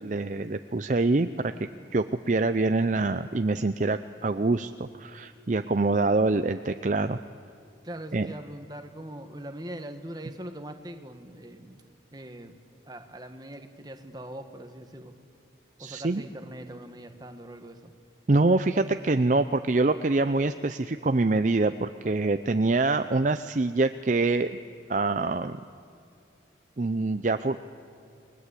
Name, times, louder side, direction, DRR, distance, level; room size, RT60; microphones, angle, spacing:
voice 1, 0.0-1.5 1.9-7.2 8.1-8.3 15.8-16.2 18.3-24.5 24.9-25.6 26.8-27.6, right 3 dB, 40° right, 10 dB, 0.5 m, -25 dB
voice 2, 7.8-11.8 12.1-12.6 12.8-15.1 15.8-17.9, right 1 dB, 20° right, 6 dB, 1.6 m, -41 dB
29.5 x 20.5 x 8.4 m, 2.5 s
head